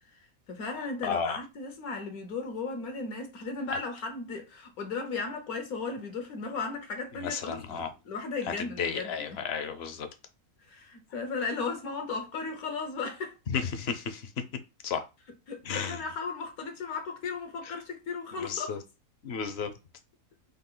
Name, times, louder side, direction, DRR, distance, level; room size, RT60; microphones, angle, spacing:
voice 1, 0.5-9.4 10.7-13.3 15.5-18.7, left 4 dB, 80° left, 1.4 m, -36 dB
voice 2, 1.0-1.4 7.1-7.9 8.6-10.1 13.5-14.3 14.8-15.0 15.6-16.0 18.3-18.8 19.2-19.7, left 6 dB, 55° left, 0.8 m, -33 dB
5.3 x 2.4 x 3.8 m
omnidirectional pair, 1.5 m